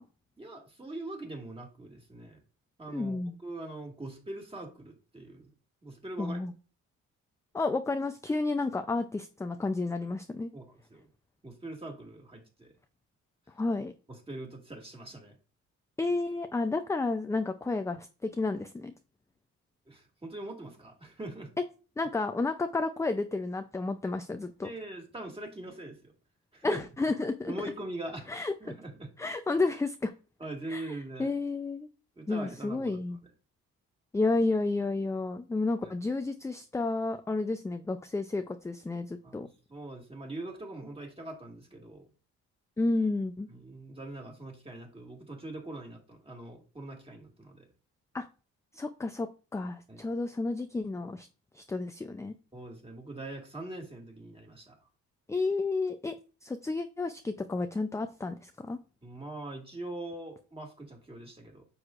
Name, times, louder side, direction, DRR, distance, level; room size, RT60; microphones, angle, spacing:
voice 1, 0.4-2.4 2.8-5.5 5.8-6.4 10.5-11.1 11.4-12.7 14.1-15.3 19.9-21.5 24.6-26.1 26.5-26.8 27.5-28.3 28.6-29.1 30.4-31.3 32.2-33.0 35.8-35.9 39.2-42.1 43.5-47.7 49.9-50.1 52.5-54.8 59.0-61.6, right 2 dB, 20° right, 1 dB, 2.2 m, -42 dB
voice 2, 2.9-3.3 6.2-6.5 7.5-10.5 13.6-13.9 16.0-18.9 22.0-24.7 26.6-27.5 28.3-28.5 29.2-30.1 30.7-31.9 32.3-33.2 34.1-39.5 42.8-43.5 48.1-48.3 48.7-51.3 51.5-52.3 55.3-56.1 56.4-58.8, left 3 dB, 10° left, 8 dB, 0.4 m, -31 dB
9.6 x 6.3 x 2.5 m, 0.36 s
cardioid pair, 90°, 30 cm